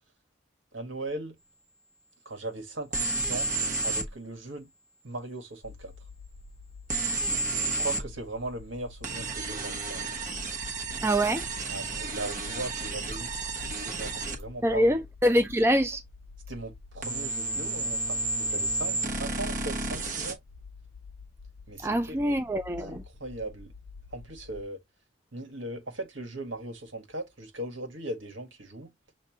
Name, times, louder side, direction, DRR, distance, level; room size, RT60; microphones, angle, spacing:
voice 1, 0.7-1.4 2.2-3.5 3.8-4.7 5.0-5.9 7.7-10.0 11.7-13.4 13.8-14.9 16.5-20.4 21.7-22.4 22.8-23.7 24.1-24.8 25.3-28.9, right 2 dB, 80° right, 1.7 m, -38 dB
sound 1, 2.9-4.1 6.9-8.1 9.0-14.4 17.0-20.3, right 3 dB, 40° right, 1.1 m, -31 dB
sound 2, 5.6-24.6, left 4 dB, 80° left, 0.6 m, -49 dB
voice 2, 11.0-11.4 14.6-16.0 21.8-23.0, equal, 15° right, 0.4 m, -24 dB
6.8 x 2.6 x 2.8 m
head